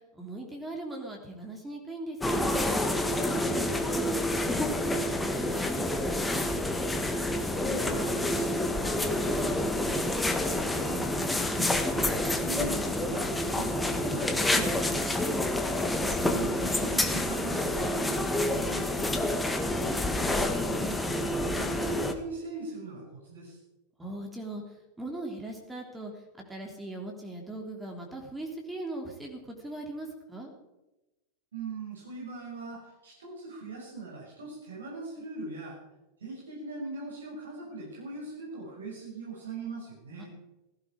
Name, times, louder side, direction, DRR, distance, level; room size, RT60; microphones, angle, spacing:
voice 1, 0.0-2.7 3.2-6.2 20.2-21.1 24.0-30.5 40.2-40.3, right 2 dB, 10° right, 1 dB, 3.2 m, -40 dB
sound 1, 2.2-22.1, left 1 dB, 5° left, 1.7 m, -28 dB
voice 2, 7.5-11.7 12.1-15.2 16.1-20.3 21.5-23.6 31.5-35.8 36.2-40.3, right 3 dB, 70° right, -4 dB, 6.2 m, -41 dB
17.0 x 16.0 x 4.8 m, 1.0 s
figure-of-eight pair, 90°, 0 cm